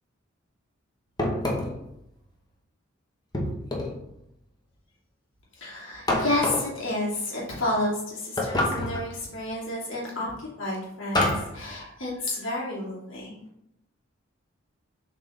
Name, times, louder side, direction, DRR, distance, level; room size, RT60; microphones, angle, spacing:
sound 1, 1.2-1.9 3.3-4.0 6.1-6.8 8.4-9.1 11.1-11.6, left 1 dB, 20° left, 1.0 m, -27 dB
voice 1, 5.5-13.5, left 1 dB, 70° left, -6 dB, 2.4 m, -30 dB
7.3 x 4.2 x 3.3 m, 0.81 s
head